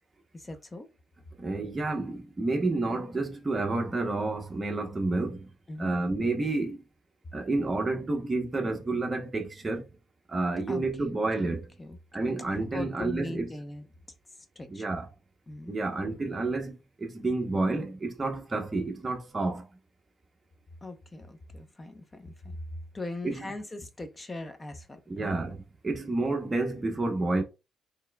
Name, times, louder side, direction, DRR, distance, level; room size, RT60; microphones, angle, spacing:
voice 1, 0.3-0.9 5.7-6.0 10.7-12.0 12.7-13.8 14.6-14.9 15.5-15.8 20.8-22.6 22.9-25.4, left 2 dB, 20° left, 0.7 m, -40 dB
voice 2, 1.4-5.5 5.8-6.8 7.3-9.8 10.3-11.7 12.1-13.5 14.7-15.1 15.7-19.7 23.2-23.5 25.1-27.4, right 2 dB, 25° right, 0.8 m, -30 dB
4.2 x 3.3 x 2.2 m
cardioid pair, 90°, 0 cm